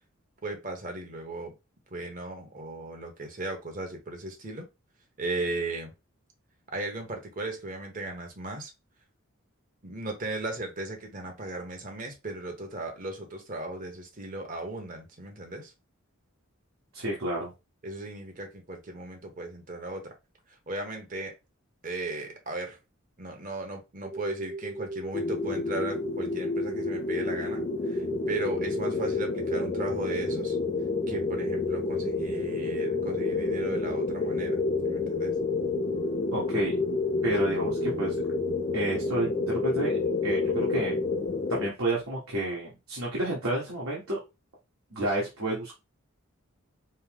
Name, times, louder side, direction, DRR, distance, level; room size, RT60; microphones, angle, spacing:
voice 1, 0.4-1.5 1.9-4.7 5.2-5.9 6.7-8.7 9.8-15.7 17.8-20.1 20.5-21.3 21.8-22.8 23.2-30.6 31.1-34.6 34.8-35.3, right 2 dB, 40° right, 1.1 m, -36 dB
voice 2, 16.9-17.5 36.3-36.8 37.2-38.2 38.7-39.9 40.2-41.0 41.5-44.2 44.9-45.8, right 1 dB, 75° right, 1.5 m, -30 dB
sound 1, 24.0-41.3, right 3 dB, 20° right, 0.9 m, -38 dB
sound 2, 25.1-41.7, left 4 dB, 30° left, 0.3 m, -30 dB
5.4 x 2.1 x 3.5 m
head